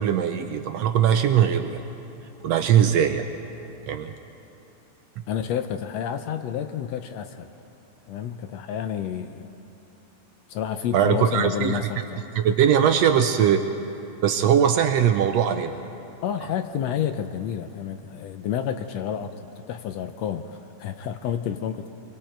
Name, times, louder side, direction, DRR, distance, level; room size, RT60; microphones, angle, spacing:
voice 1, 0.0-1.8 2.4-3.3 3.9-4.1 10.9-11.8 12.4-13.6 14.2-15.8, right 9 dB, 75° right, 7 dB, 1.6 m, -20 dB
voice 2, 5.3-7.5 8.1-9.5 10.5-12.2 16.2-22.0, left 9 dB, 75° left, 8 dB, 1.6 m, -30 dB
27.0 x 22.0 x 4.6 m, 2.9 s
omnidirectional pair, 3.5 m